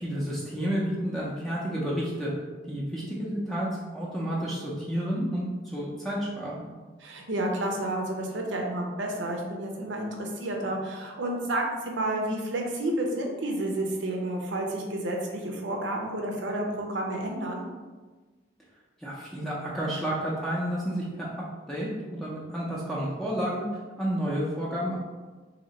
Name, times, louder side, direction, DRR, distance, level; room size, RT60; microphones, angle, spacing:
voice 1, 0.0-2.3 2.7-6.6 19.0-21.3 21.7-23.6 24.0-25.0, equal, ahead, -6 dB, 0.5 m, -30 dB
voice 2, 7.0-17.7, right 1 dB, 90° right, 1 dB, 0.7 m, -30 dB
2.9 x 2.8 x 4.1 m, 1.3 s
head